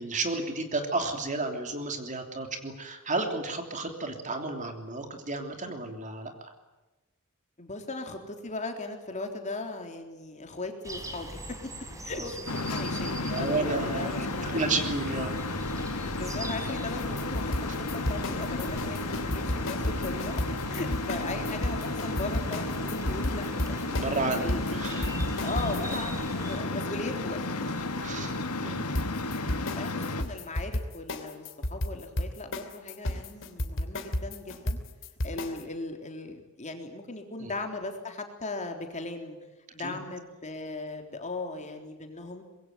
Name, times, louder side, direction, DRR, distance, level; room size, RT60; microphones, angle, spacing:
voice 1, 0.0-6.5 12.2-12.3 13.3-15.4 21.3-21.4 23.9-24.4 24.7-25.1 28.0-28.9 37.4-37.5 39.8-40.0, right 3 dB, 35° right, 5 dB, 3.2 m, -32 dB
voice 2, 7.6-11.4 12.0-14.8 16.1-24.0 24.4-27.5 28.6-28.8 29.2-29.5 29.7-34.8 35.2-39.4 39.7-42.4, left 2 dB, 35° left, 4 dB, 3.7 m, -38 dB
sound 1, 10.8-26.6, right 1 dB, 15° right, 4.2 m, -41 dB
sound 2, 12.5-30.2, left 2 dB, 85° left, 2.2 m, -33 dB
sound 3, 16.9-26.0 28.9-35.6, left 1 dB, 60° left, 2.9 m, -32 dB
25.0 x 22.0 x 9.3 m, 1.1 s
head